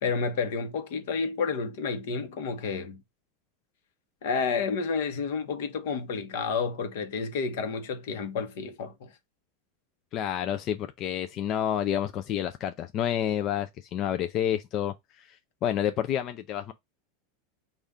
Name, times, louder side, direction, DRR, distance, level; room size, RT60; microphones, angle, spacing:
voice 1, 0.0-3.0 4.2-9.1, left 5 dB, 70° left, 0.9 m, -30 dB
voice 2, 10.1-16.7, left 10 dB, 35° left, 0.3 m, -29 dB
5.3 x 2.4 x 3.5 m
supercardioid pair, 145°, 0 cm